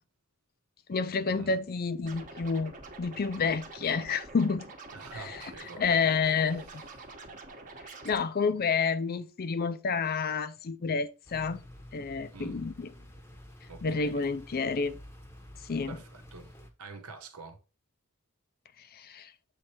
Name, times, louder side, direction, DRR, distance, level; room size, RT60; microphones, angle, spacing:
voice 1, 0.9-2.7 3.0-4.7 5.1-5.4 5.8-6.8 8.0-11.6 11.9-12.9 13.8-15.0 15.7-16.0 18.9-19.3, left 5 dB, 45° left, 0.5 m, -29 dB
Scratching (performance technique), 2.0-8.2, right 3 dB, 35° right, 1.1 m, -46 dB
voice 2, 4.9-6.1 6.6-7.1 12.3-12.6 13.7-14.3 15.9-17.6, right 4 dB, 80° right, 1.0 m, -47 dB
sound 1, 11.2-16.7, left 1 dB, 10° left, 0.9 m, -50 dB
7.4 x 3.3 x 4.3 m
head